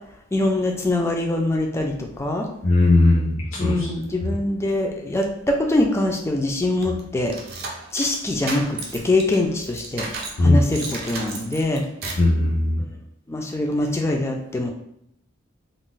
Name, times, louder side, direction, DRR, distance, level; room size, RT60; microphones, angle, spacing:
voice 1, 0.3-2.5 3.6-7.3 7.9-10.1 10.4-11.8 13.3-14.7, left 2 dB, 15° left, 2 dB, 0.3 m, -23 dB
voice 2, 2.6-3.9 4.2-4.3 10.4-10.6 12.2-12.8, left 2 dB, 70° left, -6 dB, 0.6 m, -18 dB
sound 1, 6.8-10.4 10.7-12.3, right 3 dB, 50° right, 0.5 m, -33 dB
2.4 x 2.1 x 3.7 m, 0.77 s
head